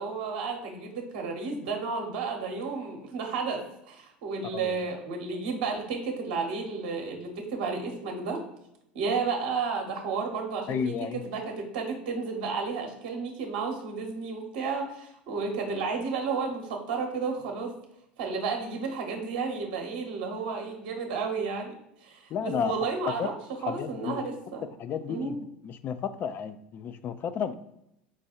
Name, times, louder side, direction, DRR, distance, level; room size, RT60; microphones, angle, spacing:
voice 1, 0.0-8.4 8.9-10.9 11.3-17.7 18.2-21.7 22.0-23.3 23.6-24.6 25.1-25.4, right 4 dB, 65° right, 2 dB, 0.9 m, -32 dB
voice 2, 10.7-11.2 22.3-22.7 23.2-23.3 23.6-24.2 24.8-27.5, left 7 dB, 40° left, 12 dB, 0.4 m, -32 dB
4.7 x 2.3 x 4.3 m, 0.82 s
hypercardioid pair, 75°, 5 cm